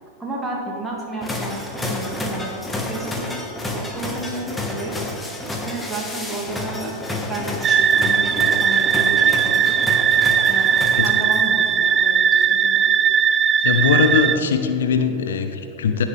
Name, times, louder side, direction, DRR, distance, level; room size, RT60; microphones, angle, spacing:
voice 1, 0.2-4.9 5.6-10.1 10.5-12.9, right 1 dB, 10° right, -4 dB, 1.8 m, -32 dB
sound 1, 1.2-11.6, left 1 dB, 10° left, 1.2 m, -30 dB
sound 2, 7.6-14.4, right 8 dB, 25° right, 0.3 m, -18 dB
voice 2, 13.6-16.0, left 6 dB, 65° left, 7 dB, 0.7 m, -20 dB
17.0 x 6.3 x 3.3 m, 2.9 s
figure-of-eight pair, 90°, 0 cm